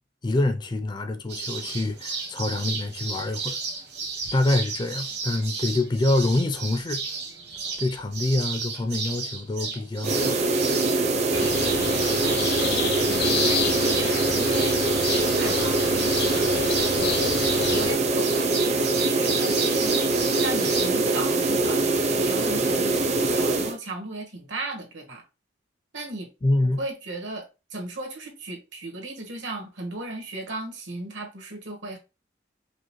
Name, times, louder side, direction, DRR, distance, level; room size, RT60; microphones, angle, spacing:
voice 1, 0.2-3.6 4.3-7.0 7.8-10.4 26.4-26.8, left 2 dB, 25° left, 0.4 m, -26 dB
sound 1, 1.3-20.9, right 4 dB, 60° right, 0.9 m, -33 dB
sound 2, 10.0-23.8, right 3 dB, 35° right, 0.5 m, -23 dB
sound 3, 11.3-17.9, left 5 dB, 60° left, 0.7 m, -30 dB
voice 2, 12.1-14.7 15.1-16.5 17.0-17.3 17.7-25.2 25.9-26.3 26.6-32.0, right 2 dB, 85° right, 1.3 m, -36 dB
4.9 x 2.1 x 3.0 m
head